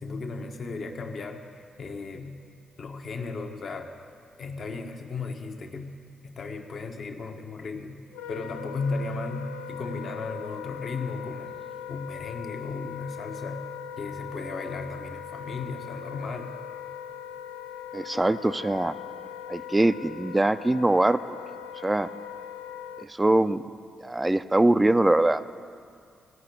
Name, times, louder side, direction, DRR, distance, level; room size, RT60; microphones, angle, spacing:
voice 1, 0.0-2.4 2.8-3.9 4.4-5.9 6.2-8.0 8.3-11.6 11.9-13.7 14.0-16.5, left 3 dB, 55° left, 4 dB, 1.1 m, -35 dB
Wind instrument woodwind instrument, 8.1-23.1, left 9 dB, 80° left, 0.3 m, -40 dB
voice 2, 17.9-18.9 19.5-21.4 21.8-22.1 23.0-23.6 24.0-25.4, right 2 dB, 15° right, 13 dB, 0.5 m, -22 dB
16.5 x 5.7 x 8.3 m, 2.3 s
hypercardioid pair, 40°, 0 cm